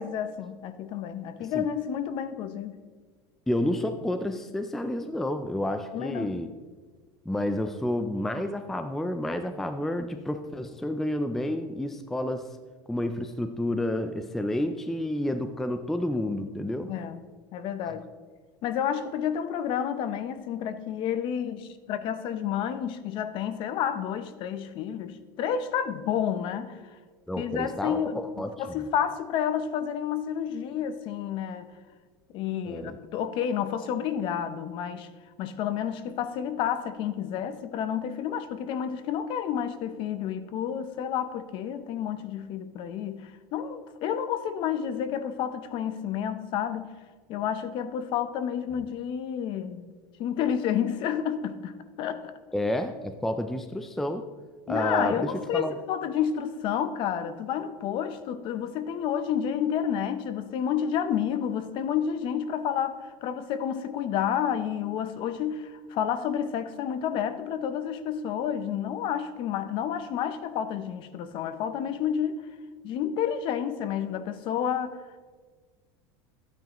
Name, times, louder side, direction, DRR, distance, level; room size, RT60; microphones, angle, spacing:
voice 1, 0.0-2.8 5.9-6.4 16.9-17.2 17.5-18.1 18.6-26.8 27.4-28.2 28.6-31.7 32.3-35.1 35.4-46.9 47.3-49.9 50.2-52.3 54.7-72.4 72.8-75.0, left 8 dB, 45° left, 11 dB, 0.7 m, -30 dB
voice 2, 3.5-6.5 7.3-12.5 12.9-16.9 27.3-28.8 32.7-33.0 52.5-54.3 54.7-55.7, left 1 dB, 5° left, 8 dB, 0.4 m, -30 dB
12.5 x 9.1 x 3.0 m, 1.4 s
supercardioid pair, 145°, 12 cm